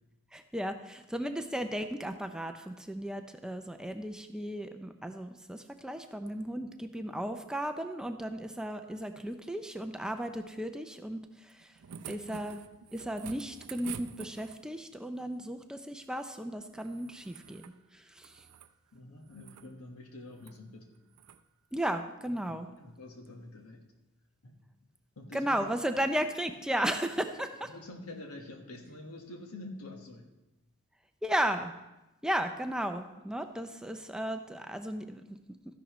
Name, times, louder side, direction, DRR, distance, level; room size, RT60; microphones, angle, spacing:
voice 1, 0.3-11.8 12.1-12.6 12.9-18.5 21.7-22.7 25.3-27.7 31.2-31.7 32.2-35.4, right 1 dB, 5° right, 6 dB, 0.4 m, -35 dB
sound 1, 11.5-14.8 16.7-17.8 18.1-18.7 19.3-19.7 20.3-20.6 21.1-21.4 22.8-22.9, right 7 dB, 80° right, 0.5 m, -48 dB
voice 2, 18.9-20.9 22.4-23.9 24.4-24.6 25.2-25.7 26.1-26.2 27.2-30.3, left 2 dB, 70° left, 3 dB, 1.4 m, -47 dB
13.5 x 11.0 x 3.1 m, 1.0 s
head